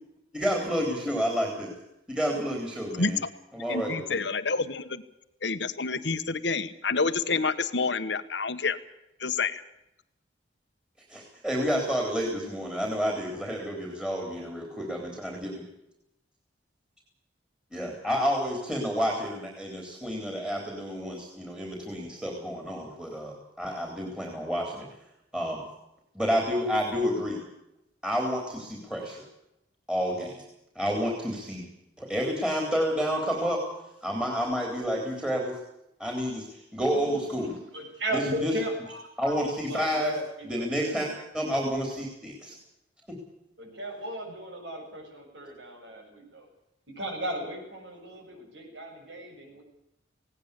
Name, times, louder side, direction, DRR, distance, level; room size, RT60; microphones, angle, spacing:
voice 1, 0.3-1.7 2.1-3.2 3.5-4.2 11.1-15.5 17.7-24.9 25.3-25.6 26.1-27.4 28.0-29.2 29.9-30.4 30.8-31.7 32.0-33.6 34.0-35.6 36.0-37.5 38.1-38.5 39.2-40.1 40.4-41.1 41.3-42.6 43.1-43.2, equal, 5° right, 2 dB, 3.6 m, -30 dB
voice 2, 3.0-3.3 3.7-5.0 5.4-8.8 9.2-9.6, left 4 dB, 65° left, 11 dB, 1.3 m, -28 dB
voice 3, 36.9-39.3 39.7-41.2 43.6-46.5 47.0-49.6, right 1 dB, 70° right, 2 dB, 7.6 m, -36 dB
19.0 x 18.0 x 8.3 m, 0.85 s
head